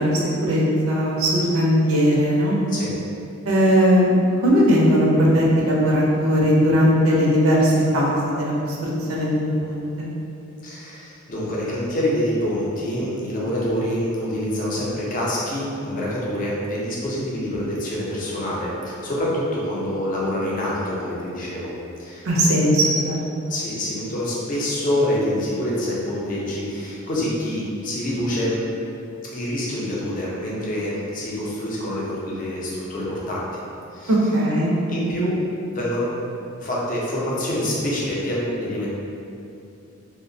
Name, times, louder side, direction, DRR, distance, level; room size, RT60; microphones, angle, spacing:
voice 1, 0.0-2.6 3.5-4.1 4.4-10.1 22.2-23.2 34.1-34.7, equal, 80° right, -4 dB, 0.5 m, -19 dB
voice 2, 10.6-21.7 22.0-22.5 23.5-28.6 29.3-33.6 33.9-34.1 34.9-35.4 35.7-36.2 36.6-38.9, left 1 dB, 40° left, -5 dB, 0.5 m, -26 dB
2.7 x 2.1 x 2.6 m, 2.6 s
head